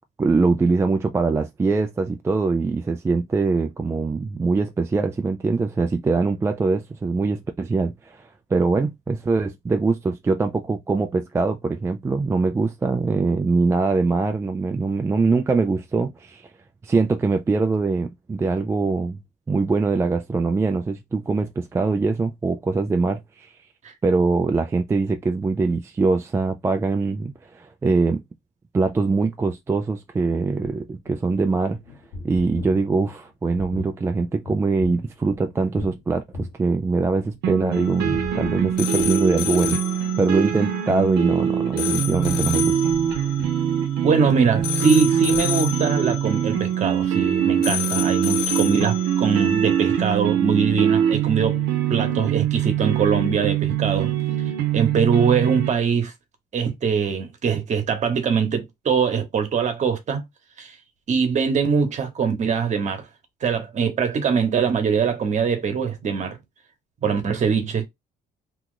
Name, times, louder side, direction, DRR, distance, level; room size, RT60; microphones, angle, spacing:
voice 1, 0.2-16.5 16.8-19.2 19.5-23.5 24.0-28.2 28.7-31.8 32.2-42.8, right 3 dB, 15° right, 0.3 m, -23 dB
sound 1, 30.1-36.0 36.3-37.5 37.8-39.4 39.7-39.9 40.2-40.4 40.9-41.2 41.7-45.1 45.3-45.5, left 3 dB, 55° left, 1.1 m, -39 dB
sound 2, 37.4-55.7, right 9 dB, 85° right, 0.8 m, -23 dB
sound 3, 37.7-50.2, left 12 dB, 90° left, 0.5 m, -32 dB
voice 2, 44.0-51.6 51.9-54.1 54.7-56.1 56.5-60.2 60.6-60.7 61.1-63.0 63.4-66.4 67.0-67.9, right 6 dB, 45° right, 1.1 m, -22 dB
2.9 x 2.4 x 3.8 m
cardioid pair, 110°, 17 cm